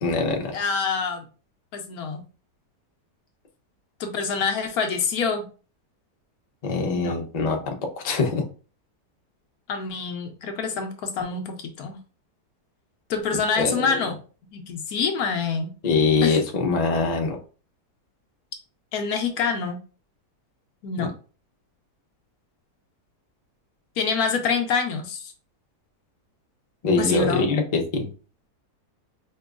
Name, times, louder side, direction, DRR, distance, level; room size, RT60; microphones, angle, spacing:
voice 1, 0.0-0.5 6.6-7.7 8.0-8.4 13.6-14.0 15.8-17.4 21.0-21.1 26.8-28.1, left 4 dB, 40° left, 2 dB, 0.6 m, -23 dB
voice 2, 0.5-1.2 1.7-2.2 4.0-5.4 6.9-7.1 9.7-12.0 13.1-14.2 14.5-15.7 16.2-16.4 18.9-19.8 20.8-21.1 24.0-25.3 27.0-27.5, left 5 dB, 70° left, 5 dB, 1.1 m, -26 dB
5.2 x 2.9 x 2.4 m, 0.37 s
omnidirectional pair, 1.7 m